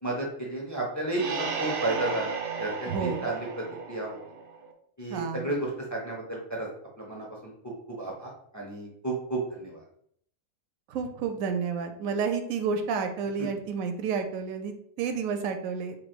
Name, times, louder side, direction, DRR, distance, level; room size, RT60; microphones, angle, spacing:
voice 1, 0.0-3.5 3.9-4.2 5.0-6.7 7.0-7.5 7.9-9.8, right 2 dB, 20° left, -2 dB, 0.5 m, -32 dB
sound 1, 1.1-4.7, right 5 dB, 60° right, 0.6 m, -34 dB
voice 2, 2.9-3.3 5.1-5.5 10.9-16.0, right 5 dB, 80° right, 6 dB, 1.0 m, -30 dB
3.1 x 2.5 x 4.3 m, 0.69 s
omnidirectional pair, 1.4 m